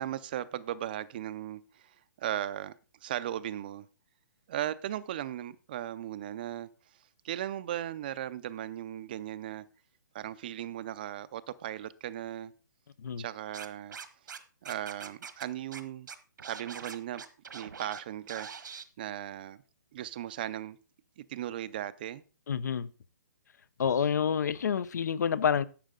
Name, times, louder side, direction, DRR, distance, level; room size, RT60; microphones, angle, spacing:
voice 1, 0.0-2.7 3.0-3.9 4.5-6.7 7.2-9.6 10.1-12.5 13.2-14.0 14.3-16.1 16.4-17.2 17.5-19.6 19.9-20.8 21.2-22.2, right 12 dB, 30° right, 0.5 m, -37 dB
Scratching (performance technique), 13.5-14.4 14.6-15.4 15.7-15.8 16.1-18.0 18.3-18.8, right 6 dB, 80° right, 1.4 m, -43 dB
voice 2, 22.5-22.9 23.8-25.6, left 7 dB, 65° left, 0.7 m, -28 dB
12.0 x 8.2 x 3.8 m
hypercardioid pair, 170°, 10 cm